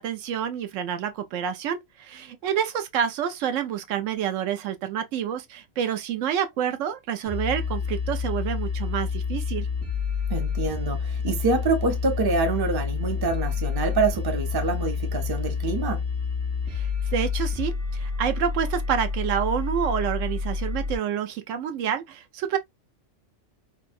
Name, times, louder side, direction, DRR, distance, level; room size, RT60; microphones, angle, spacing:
voice 1, 0.0-9.7 16.7-22.6, right 8 dB, 85° right, 0.9 m, -28 dB
sound 1, 7.2-21.0, left 5 dB, 65° right, 1.5 m, -28 dB
voice 2, 10.3-16.0, right 4 dB, 30° right, 0.4 m, -26 dB
3.4 x 2.2 x 2.4 m
omnidirectional pair, 1.3 m